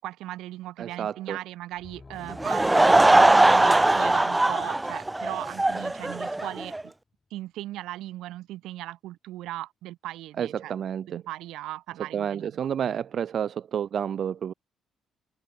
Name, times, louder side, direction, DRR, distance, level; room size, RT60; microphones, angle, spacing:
voice 1, 0.0-6.9 7.3-10.7 11.1-12.7, right 15 dB, 90° right, 5.3 m, -38 dB
voice 2, 0.8-1.4 10.4-11.2 12.1-14.5, right 8 dB, 60° right, 2.0 m, -30 dB
Deep sea monster, 1.7-6.5 6.8-6.9, left 3 dB, 25° left, 6.6 m, -49 dB
Laughter / Crowd, 2.3-6.8, right 2 dB, 15° right, 0.4 m, -20 dB
cardioid pair, 90°, 0 cm